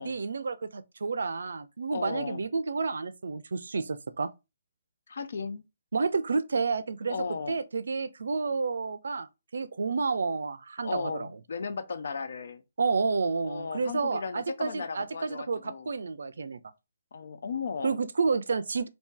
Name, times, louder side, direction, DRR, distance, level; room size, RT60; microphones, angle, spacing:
voice 1, 0.0-4.3 5.9-7.2 7.5-9.3 9.5-11.3 12.8-16.6 17.8-18.9, right 4 dB, 80° right, 0.4 m, -30 dB
voice 2, 1.9-2.4 5.1-5.6 7.1-7.6 10.8-12.6 13.4-15.9 17.1-17.9, left 5 dB, 65° left, 0.5 m, -35 dB
2.7 x 2.7 x 3.7 m
hypercardioid pair, 155°, 0 cm